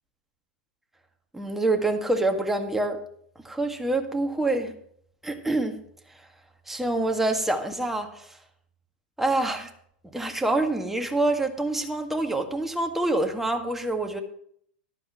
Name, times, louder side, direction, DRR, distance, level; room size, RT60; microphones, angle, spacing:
voice 1, 1.3-3.0 3.4-4.7 5.2-5.8 6.7-8.3 9.2-9.7 10.1-14.2, right 2 dB, 5° right, 4 dB, 1.7 m, -26 dB
14.0 x 12.0 x 3.0 m, 0.65 s
hypercardioid pair, 100°, 5 cm